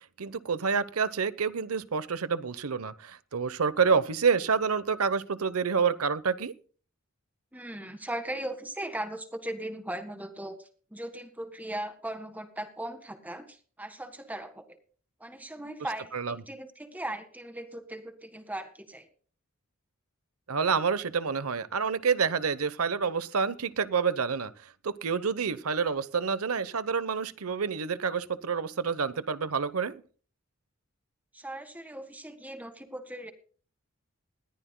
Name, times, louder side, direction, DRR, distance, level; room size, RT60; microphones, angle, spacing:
voice 1, 0.2-6.5 16.1-16.3 20.5-24.5 24.8-30.0, right 5 dB, 85° right, 15 dB, 0.9 m, -28 dB
voice 2, 7.5-14.8 15.2-19.1 31.3-33.3, right 1 dB, 5° right, 8 dB, 1.7 m, -38 dB
20.5 x 14.0 x 2.2 m, 0.40 s
head